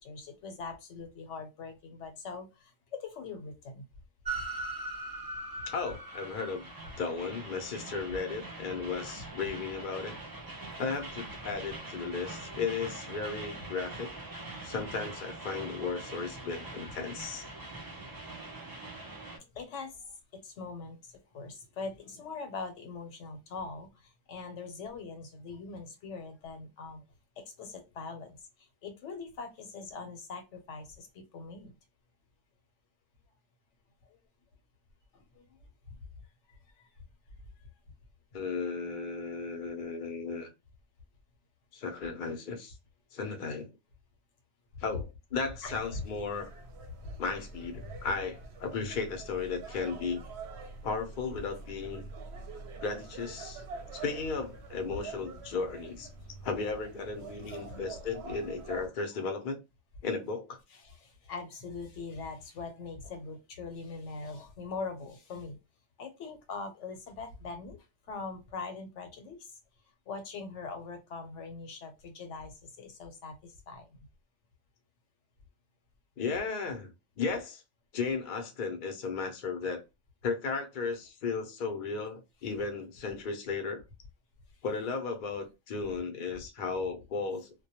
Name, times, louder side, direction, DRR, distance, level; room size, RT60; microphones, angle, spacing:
voice 1, 0.0-3.9 10.7-10.8 12.3-12.4 19.5-27.0 27.4-31.7 34.1-34.2 35.1-35.5 35.9-36.0 36.5-36.9 44.9-45.0 45.6-45.7 47.0-47.1 56.3-56.4 57.3-57.9 60.7-65.6 66.0-67.8 68.0-69.6 70.1-73.9, left 4 dB, 75° left, 1.0 m, -42 dB
Train, 4.2-19.4, right 2 dB, 35° right, 0.3 m, -42 dB
voice 2, 5.7-6.7 7.0-10.1 10.8-14.1 14.6-17.5 38.3-40.5 41.7-42.8 43.1-43.7 44.8-46.5 47.2-50.2 50.8-52.1 52.8-53.6 53.9-56.1 56.4-59.6 60.0-60.6 76.2-77.6 77.9-79.8 80.2-83.8 84.6-87.5, left 4 dB, 55° left, 0.6 m, -35 dB
sound 1, 45.6-58.9, right 4 dB, 65° right, 0.8 m, -46 dB
2.2 x 2.1 x 2.8 m
omnidirectional pair, 1.2 m